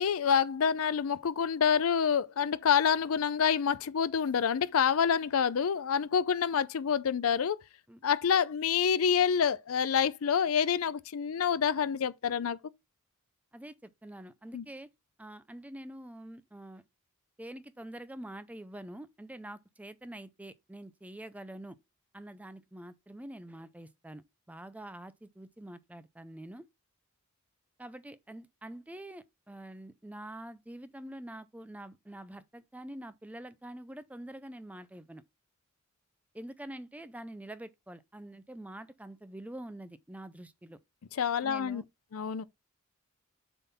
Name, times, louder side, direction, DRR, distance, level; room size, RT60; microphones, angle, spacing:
voice 1, 0.0-7.6 8.0-12.6 14.5-14.6 41.2-41.8 42.1-42.5, left 7 dB, 70° left, 0.5 m, -27 dB
voice 2, 13.5-14.9 15.2-16.8 17.4-21.8 22.1-26.7 27.8-35.2 36.3-40.8 41.4-41.9, right 1 dB, 5° right, 0.5 m, -46 dB
7.0 x 3.8 x 4.1 m
head